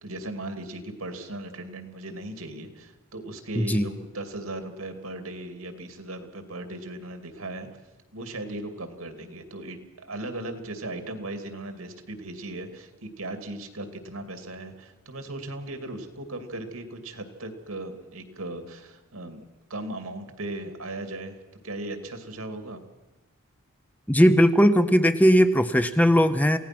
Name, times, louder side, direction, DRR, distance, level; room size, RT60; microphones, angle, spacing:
voice 1, 0.0-7.7 8.1-19.4 19.7-21.4 21.6-22.8, right 2 dB, 80° right, 7 dB, 2.5 m, -37 dB
voice 2, 3.6-3.9 24.1-26.6, equal, 5° left, 10 dB, 0.7 m, -18 dB
28.0 x 17.0 x 6.0 m, 1.1 s
head